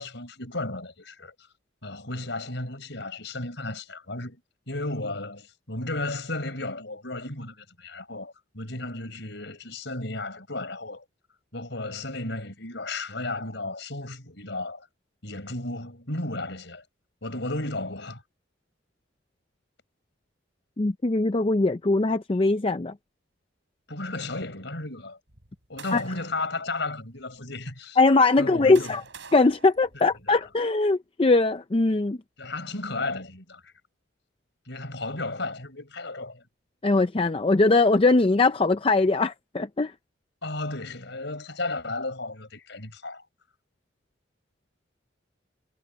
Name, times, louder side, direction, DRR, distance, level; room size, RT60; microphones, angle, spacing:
voice 1, 0.0-1.3 1.8-4.4 4.7-11.0 11.5-14.9 15.2-16.8 17.2-18.2 23.9-25.2 25.7-28.0 28.4-29.0 30.3-30.4 32.4-33.7 34.7-36.4 40.4-43.2, left 2 dB, 60° left, 6.5 m, -34 dB
voice 2, 20.8-22.9 25.9-26.0 28.0-29.0 29.3-32.2 36.8-39.9, left 3 dB, 30° left, 0.5 m, -21 dB
sound 1, 25.3-26.4 27.2-27.3 28.2-30.6, right 6 dB, 65° right, 5.0 m, -48 dB
head